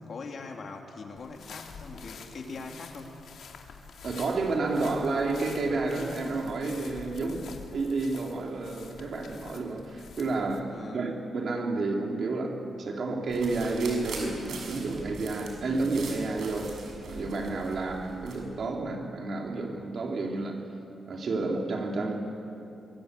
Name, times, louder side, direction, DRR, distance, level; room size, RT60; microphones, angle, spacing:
voice 1, 0.0-3.2 10.7-11.1, left 4 dB, 50° left, 2.8 m, -41 dB
sound 1, 1.2-10.6, left 5 dB, 70° left, 2.7 m, -47 dB
voice 2, 4.0-16.8 17.1-20.6 21.1-22.2, right 3 dB, 50° right, 3.5 m, -30 dB
sound 2, 13.3-18.4, right 3 dB, 75° right, 6.6 m, -42 dB
25.5 x 24.0 x 8.4 m
wide cardioid pair, 145°, 0 cm